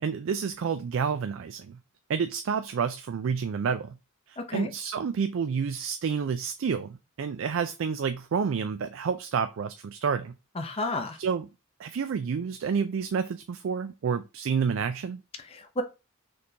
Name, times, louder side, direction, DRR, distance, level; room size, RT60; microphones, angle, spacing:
voice 1, 0.0-1.8 2.1-3.9 4.3-10.3 11.2-11.5 11.8-15.2, right 6 dB, 70° right, 0.4 m, -29 dB
voice 2, 4.4-4.7 10.6-11.2 15.4-15.8, left 2 dB, 30° left, 0.6 m, -32 dB
4.1 x 3.3 x 2.7 m
head